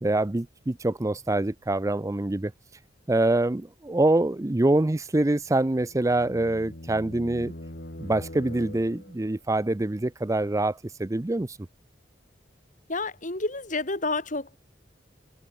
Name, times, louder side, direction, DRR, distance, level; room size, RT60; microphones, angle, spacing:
voice 1, 0.0-2.5 3.1-7.5 8.0-11.6, right 2 dB, 15° right, 0.5 m, -25 dB
sound 1, 5.4-9.4, left 1 dB, 60° left, 3.1 m, -42 dB
voice 2, 12.9-14.6, left 3 dB, 45° left, 3.2 m, -29 dB
head